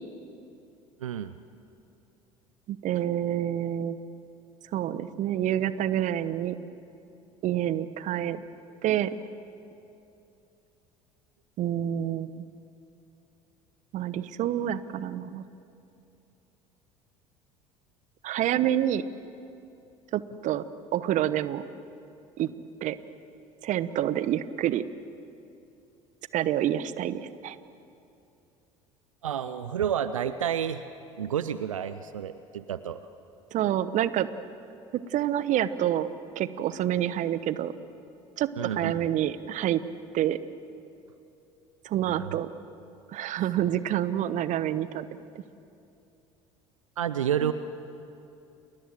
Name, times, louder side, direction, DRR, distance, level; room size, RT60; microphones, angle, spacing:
voice 1, 1.0-1.3 29.2-30.8 31.2-33.1 38.6-39.0 42.0-42.4 47.0-47.5, right 9 dB, 80° right, 13 dB, 0.7 m, -30 dB
voice 2, 2.7-4.0 4.7-6.6 7.4-8.4 8.8-9.2 11.6-12.4 13.9-15.4 18.2-19.1 20.1-20.6 20.9-21.6 22.4-22.5 22.8-23.0 23.6-24.8 26.3-27.6 33.5-34.3 35.1-36.1 36.3-37.7 38.4-39.8 40.1-40.4 41.8-42.5 43.1-45.1 47.4-47.5, right 11 dB, 50° right, 15 dB, 1.0 m, -27 dB
30.0 x 21.5 x 7.5 m, 2.7 s
figure-of-eight pair, 65°, 17 cm